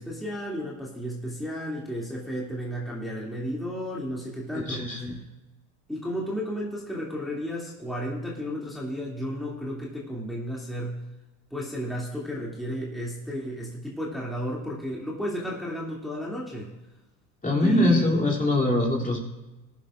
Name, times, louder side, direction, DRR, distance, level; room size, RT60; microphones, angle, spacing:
voice 1, 0.0-4.9 5.9-11.0 11.5-16.7 17.6-18.2, equal, ahead, -5 dB, 2.6 m, -33 dB
voice 2, 4.7-5.1 17.4-19.2, left 1 dB, 15° left, 0 dB, 2.9 m, -23 dB
20.0 x 10.5 x 2.5 m, 1.1 s
hypercardioid pair, 80°, 48 cm